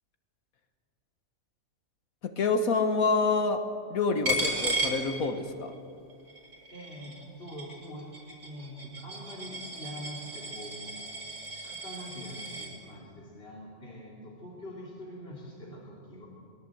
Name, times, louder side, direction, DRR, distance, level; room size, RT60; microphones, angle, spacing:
voice 1, 2.2-3.6 3.9-5.7, left 4 dB, 85° left, 7 dB, 1.8 m, -27 dB
Coin (dropping), 4.3-5.7 6.1-12.7, right 1 dB, 75° right, 5.0 m, -35 dB
voice 2, 6.7-8.1 8.4-11.0 11.5-16.3, equal, 45° left, -3 dB, 3.5 m, -44 dB
23.0 x 21.5 x 7.9 m, 2.4 s
omnidirectional pair, 1.5 m